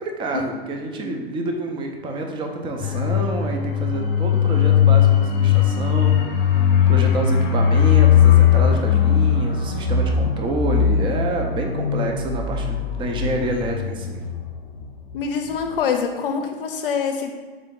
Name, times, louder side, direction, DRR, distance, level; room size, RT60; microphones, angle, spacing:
voice 1, 0.0-6.2 6.5-14.2, right 1 dB, 15° right, 2 dB, 0.5 m, -27 dB
sound 1, 2.8-15.2 15.5-15.6, left 8 dB, 45° left, 0.9 m, -19 dB
voice 2, 15.1-17.3, left 6 dB, 60° left, 4 dB, 0.6 m, -25 dB
3.8 x 3.7 x 3.6 m, 1.4 s
hypercardioid pair, 110°, 31 cm